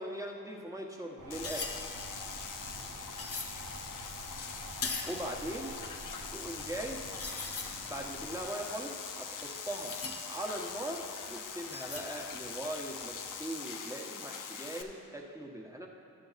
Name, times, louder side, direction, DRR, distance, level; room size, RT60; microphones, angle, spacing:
voice 1, 0.0-1.7 5.0-5.8 6.3-7.0 7.9-10.0 10.3-15.9, right 1 dB, 10° right, -1 dB, 1.2 m, -40 dB
sound 1, 1.2-3.7 4.2-5.3 5.6-5.7 6.3-6.4 6.6-6.7 7.1-7.9 8.4-10.8 11.7-12.3 12.6-12.9, left 4 dB, 40° left, 1.0 m, -41 dB
sound 2, 1.2-8.4, right 2 dB, 80° right, 1.5 m, -48 dB
sound 3, 1.3-14.8, left 6 dB, 65° left, 0.7 m, -43 dB
12.5 x 5.7 x 4.1 m, 2.7 s
cardioid pair, 60°, 34 cm